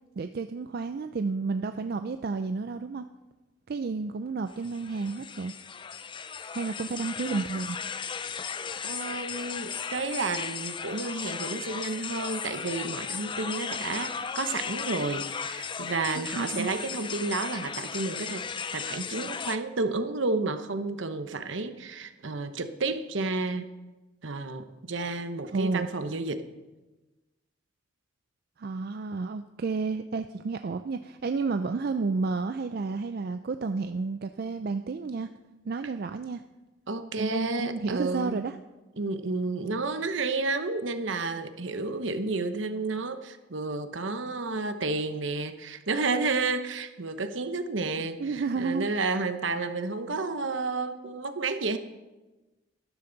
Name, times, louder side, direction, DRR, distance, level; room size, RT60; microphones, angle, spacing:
voice 1, 0.2-3.0 3.7-5.5 6.5-7.8 16.1-16.7 25.5-25.9 28.6-35.3 35.7-36.4 37.2-38.5 48.2-48.9, right 4 dB, 50° right, 9 dB, 0.4 m, -31 dB
sound 1, 4.5-19.6, left 6 dB, 25° left, 0.4 m, -36 dB
voice 2, 8.8-18.4 18.7-23.7 24.2-26.4 36.9-38.4 39.0-51.8, right 3 dB, 70° right, 9 dB, 0.9 m, -31 dB
13.5 x 12.5 x 4.0 m, 1.1 s
head